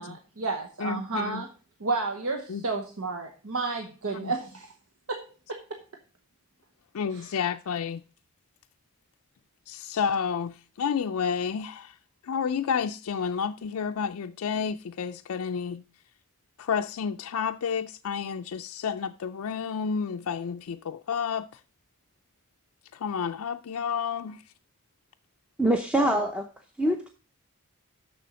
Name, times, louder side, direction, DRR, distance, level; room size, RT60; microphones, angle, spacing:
voice 1, 0.0-1.5 1.8-4.7 5.1-5.8 7.1-7.4, right 3 dB, 75° right, 1.1 m, -32 dB
voice 2, 0.8-1.4 2.5-2.6 4.2-4.3 6.9-8.0 9.7-11.9 12.2-15.8 16.6-21.5 22.9-24.4, left 6 dB, 80° left, 0.4 m, -30 dB
voice 3, 25.6-26.5 26.8-27.1, right 1 dB, 5° right, 0.6 m, -24 dB
6.8 x 6.3 x 6.2 m
head